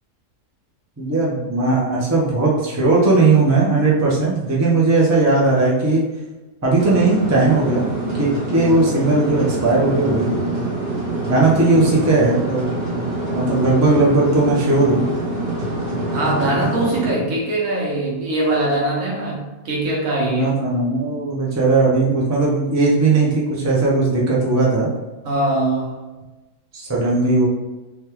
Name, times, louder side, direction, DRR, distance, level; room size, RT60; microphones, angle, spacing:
voice 1, 1.0-6.0 6.6-7.9 8.2-10.4 11.3-12.8 13.3-15.0 20.3-24.9 26.7-27.5, right 3 dB, 25° right, -5 dB, 0.3 m, -17 dB
sound 1, 6.8-17.1, right 2 dB, 85° right, 1.6 m, -25 dB
voice 2, 16.1-20.5 25.2-25.9, right 2 dB, 65° right, -4 dB, 1.3 m, -22 dB
3.5 x 2.3 x 2.9 m, 1.1 s
omnidirectional pair, 1.5 m